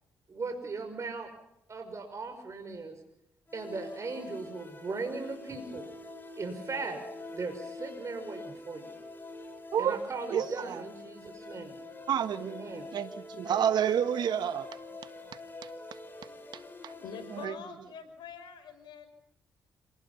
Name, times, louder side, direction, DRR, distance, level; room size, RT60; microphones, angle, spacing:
voice 1, 0.3-1.3 1.7-3.0 3.5-5.9 6.4-7.0 7.3-8.9 9.8-11.8 12.4-12.9, right 3 dB, 40° right, 5.6 m, -38 dB
sound 1, 3.5-17.4, left 2 dB, 25° left, 6.9 m, -45 dB
voice 2, 10.3-10.8 12.1-12.6 12.9-14.7 15.6-15.7 16.5-16.9 17.3-17.6, right 9 dB, 70° right, 1.6 m, -30 dB
voice 3, 17.0-19.1, left 6 dB, 75° left, 5.7 m, -44 dB
27.5 x 19.5 x 5.6 m
supercardioid pair, 60°, 8 cm